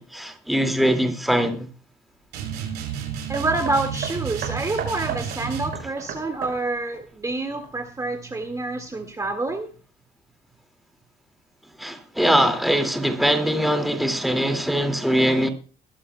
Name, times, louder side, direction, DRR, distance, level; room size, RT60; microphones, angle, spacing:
voice 1, 0.0-1.7 11.8-15.5, equal, ahead, 2.2 m, -22 dB
sound 1, 2.3-5.8, right 8 dB, 85° right, 4.6 m, -31 dB
voice 2, 3.3-9.7, right 2 dB, 20° right, 1.9 m, -27 dB
Hammer, 3.3-8.1 8.9-9.0, right 7 dB, 70° right, 6.1 m, -36 dB
21.0 x 13.0 x 2.3 m
cardioid pair, 110°, 17 cm